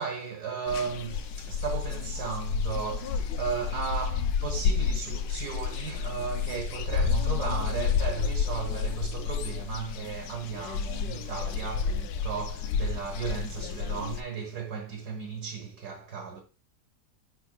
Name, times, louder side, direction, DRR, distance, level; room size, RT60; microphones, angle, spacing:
voice 1, 0.0-16.4, right 6 dB, 65° right, 1.8 m, -35 dB
sound 1, 0.7-14.2, left 6 dB, 85° left, 1.3 m, -30 dB
10.5 x 3.9 x 2.3 m
omnidirectional pair, 1.9 m